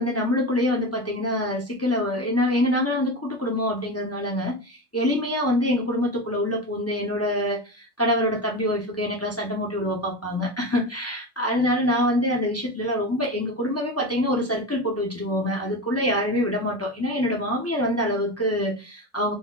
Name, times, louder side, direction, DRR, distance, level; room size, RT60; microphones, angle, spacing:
voice 1, 0.0-19.3, left 1 dB, 20° left, 0.4 m, -25 dB
4.0 x 2.1 x 2.3 m
omnidirectional pair, 1.3 m